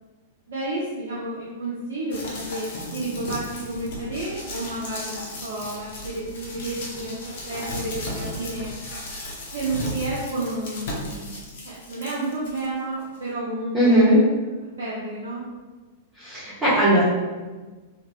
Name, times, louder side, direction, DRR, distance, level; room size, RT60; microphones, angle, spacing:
voice 1, 0.5-8.7 9.5-11.4 11.6-14.2 14.8-15.4, right 2 dB, 70° right, -8 dB, 0.7 m, -31 dB
sound 1, 2.1-12.7 13.1-13.2, left 1 dB, 60° left, 0.8 m, -35 dB
voice 2, 13.7-14.2 16.2-17.0, right 1 dB, 20° right, -13 dB, 1.2 m, -18 dB
3.8 x 2.7 x 2.4 m, 1.3 s
figure-of-eight pair, 100°, 0 cm